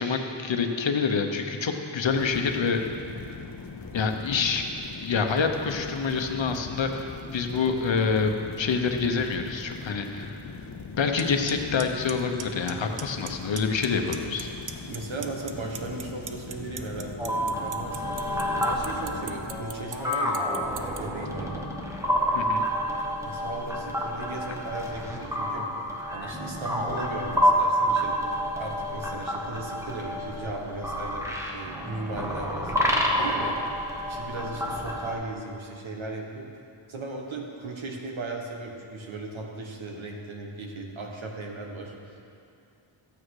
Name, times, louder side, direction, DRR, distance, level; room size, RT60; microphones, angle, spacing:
voice 1, 0.0-2.8 3.9-4.6 5.0-8.3 8.6-10.4 11.0-14.5 22.3-22.7, left 5 dB, 65° left, 5 dB, 1.0 m, -27 dB
sound 1, 2.0-19.6, left 4 dB, 45° left, 0.8 m, -41 dB
Clock, 11.2-11.3 11.5-11.8 12.1-12.7 13.0-13.3 13.6-14.4 14.7-21.0, right 7 dB, 40° right, 0.6 m, -36 dB
voice 2, 13.1-13.5 14.9-18.2 18.6-21.7 23.2-28.2 28.5-36.5 36.9-42.2, right 3 dB, 70° right, 0 dB, 1.6 m, -37 dB
sound 2, 17.2-35.1, equal, 5° right, 1.2 m, -29 dB
13.5 x 8.9 x 4.9 m, 2.5 s
wide cardioid pair, 120°, 48 cm